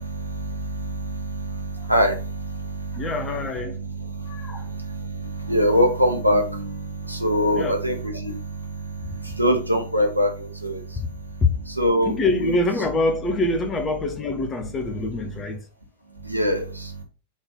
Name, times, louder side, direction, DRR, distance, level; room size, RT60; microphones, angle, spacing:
voice 1, 0.0-3.1 3.7-11.0 11.7-12.6 16.2-17.0, equal, 90° right, 0.9 m, -24 dB
voice 2, 2.9-3.8 4.3-4.6 7.5-7.8 11.4-11.5 12.0-15.6, left 2 dB, 20° left, 0.9 m, -25 dB
4.1 x 3.4 x 3.7 m
figure-of-eight pair, 90°, 0 cm